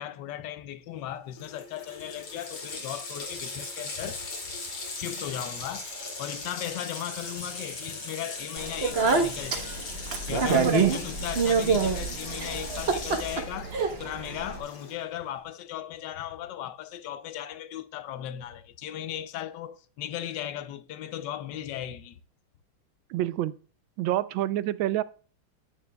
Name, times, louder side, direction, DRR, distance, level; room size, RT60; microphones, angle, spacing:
voice 1, 0.0-4.2 5.0-5.9 6.2-9.8 10.3-22.2, left 11 dB, 70° left, 1.1 m, -37 dB
Water tap faucet, 1.1-1.2 1.4-15.1, left 3 dB, 90° left, 3.5 m, -39 dB
Speech, 8.6-14.6, right 4 dB, 40° right, 0.9 m, -27 dB
voice 2, 23.1-23.6 24.0-25.0, right 14 dB, 75° right, 1.2 m, -27 dB
10.5 x 9.0 x 2.3 m
omnidirectional pair, 2.3 m